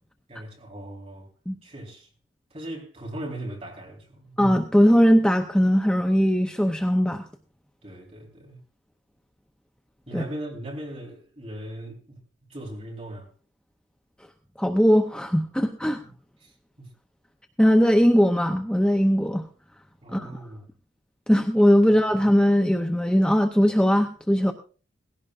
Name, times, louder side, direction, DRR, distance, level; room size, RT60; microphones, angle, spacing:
voice 1, 0.3-1.3 1.6-2.1 2.5-4.3 7.8-8.6 10.1-12.2 12.5-13.3 16.0-16.1 16.4-16.5 16.8-16.9 20.0-20.7 21.8-21.9, right 1 dB, 30° right, 4.2 m, -38 dB
voice 2, 4.4-7.3 10.1-10.2 14.6-16.0 17.6-19.5 20.1-20.3 21.3-24.5, equal, 5° left, 0.6 m, -20 dB
18.0 x 16.5 x 2.5 m
head